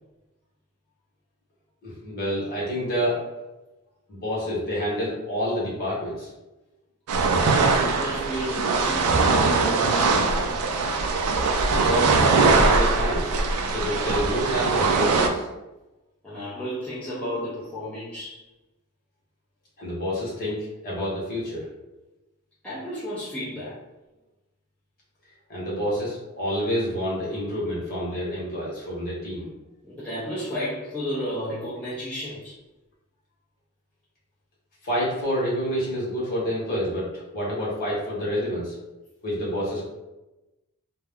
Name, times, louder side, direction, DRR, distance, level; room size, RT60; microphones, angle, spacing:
voice 1, 1.8-3.2 4.1-6.3 11.7-13.4 13.7-15.5 19.8-21.7 25.5-29.5 34.8-38.7 39.2-39.8, equal, 40° left, -6 dB, 1.0 m, -28 dB
sound 1, 7.1-15.3, right 4 dB, 85° right, 0.4 m, -21 dB
voice 2, 7.3-10.4 16.2-18.4 22.6-23.8 29.8-32.5, equal, 5° left, -11 dB, 0.5 m, -33 dB
2.2 x 2.1 x 3.4 m, 1.0 s
head